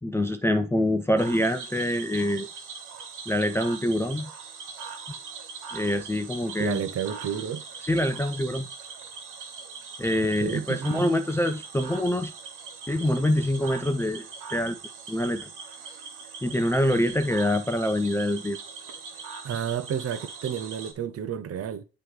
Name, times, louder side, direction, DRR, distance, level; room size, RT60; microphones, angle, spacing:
voice 1, 0.0-2.5 3.3-4.3 5.7-6.8 7.9-8.7 10.0-12.3 12.9-14.3 14.5-14.8 15.1-15.5 16.4-18.6, left 1 dB, 10° left, 0.5 m, -25 dB
Cricket / Frog, 1.2-20.9, right 5 dB, 85° right, 1.2 m, -41 dB
voice 2, 6.6-7.6 10.2-11.0 19.4-21.8, right 8 dB, 50° right, 0.7 m, -31 dB
7.7 x 3.0 x 4.8 m
cardioid pair, 90°, 30 cm